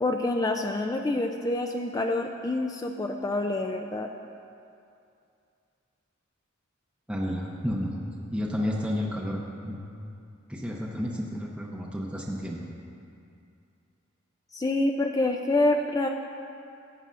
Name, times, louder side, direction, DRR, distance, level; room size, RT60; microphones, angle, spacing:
voice 1, 0.0-4.1 14.5-16.1, left 2 dB, 20° left, 4 dB, 0.3 m, -27 dB
voice 2, 7.1-7.9 8.3-9.8 10.5-12.6, equal, 5° right, -4 dB, 0.7 m, -31 dB
14.5 x 9.3 x 2.5 m, 2.5 s
head